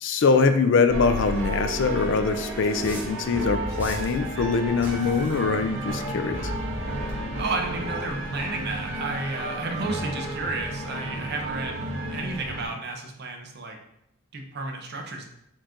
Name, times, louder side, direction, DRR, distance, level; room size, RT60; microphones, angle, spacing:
voice 1, 0.0-6.5, left 4 dB, 55° left, 9 dB, 0.4 m, -23 dB
sound 1, 0.9-12.7, right 1 dB, 65° right, 1.4 m, -32 dB
sound 2, 2.0-2.1 2.8-3.2 3.8-4.2 4.8-5.1 5.8-6.0, equal, 10° right, 0.7 m, -38 dB
voice 2, 7.4-13.8 14.3-15.2, right 3 dB, 50° right, 3 dB, 0.6 m, -32 dB
4.5 x 2.5 x 4.3 m, 0.79 s
head